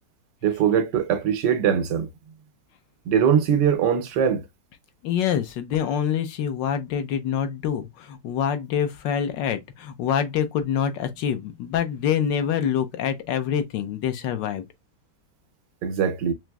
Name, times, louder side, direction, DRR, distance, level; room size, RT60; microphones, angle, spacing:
voice 1, 0.4-2.1 3.1-4.4 15.8-16.3, right 8 dB, 80° right, 1.4 m, -21 dB
voice 2, 5.0-14.6, left 8 dB, 90° left, 1.4 m, -26 dB
6.1 x 2.6 x 2.2 m
omnidirectional pair, 1.9 m